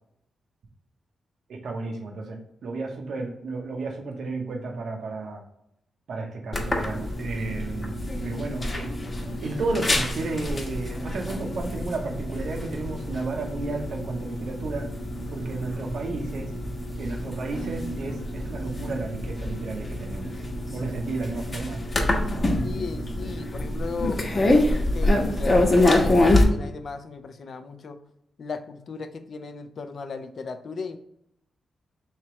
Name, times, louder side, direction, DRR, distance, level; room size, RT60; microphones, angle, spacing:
voice 1, 1.5-5.4 6.1-8.9 9.4-14.9 15.3-16.5 17.0-20.3 20.7-21.8, right 3 dB, 75° right, 1 dB, 0.7 m, -32 dB
sound 1, 6.5-26.4, left 1 dB, 35° left, 0.9 m, -26 dB
voice 2, 22.6-28.0 28.4-31.0, left 4 dB, 60° left, 8 dB, 0.4 m, -36 dB
3.2 x 2.9 x 4.4 m, 0.79 s
cardioid pair, 75°, 0 cm